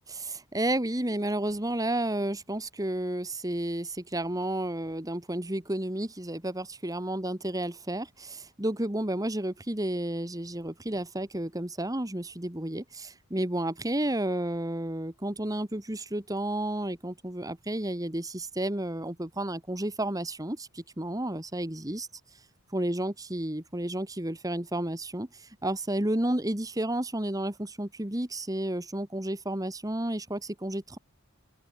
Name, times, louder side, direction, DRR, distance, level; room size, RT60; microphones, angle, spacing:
voice 1, 0.1-22.1 22.7-31.0, right 1 dB, 15° right, 1.7 m, -31 dB
open air
head